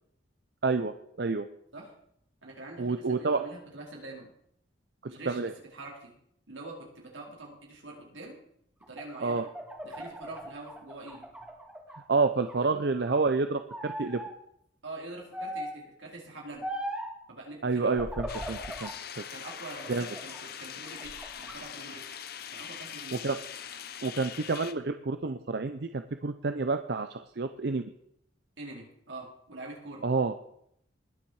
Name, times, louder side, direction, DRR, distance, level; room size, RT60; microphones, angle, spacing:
voice 1, 0.6-1.5 2.8-3.4 5.3-5.5 9.2-9.4 12.1-14.2 17.6-18.9 19.9-20.1 23.1-23.4 24.0-27.8 30.0-30.3, right 4 dB, 60° right, 9 dB, 0.6 m, -29 dB
voice 2, 2.4-4.3 5.0-6.1 6.5-8.4 8.9-9.5 9.8-11.3 12.6-12.7 14.8-16.6 17.3-18.0 19.3-22.2 22.5-23.3 28.6-30.0, right 2 dB, 85° right, -2 dB, 4.5 m, -45 dB
sound 1, 8.8-12.0 12.4-13.3 13.7-14.3 15.3-15.9 16.6-17.2 17.9-19.0 19.4-20.4 20.9-21.6, equal, 5° right, 1.8 m, -39 dB
sound 2, 18.3-24.7, left 9 dB, 55° left, 0.8 m, -42 dB
20.5 x 7.2 x 4.8 m, 0.71 s
head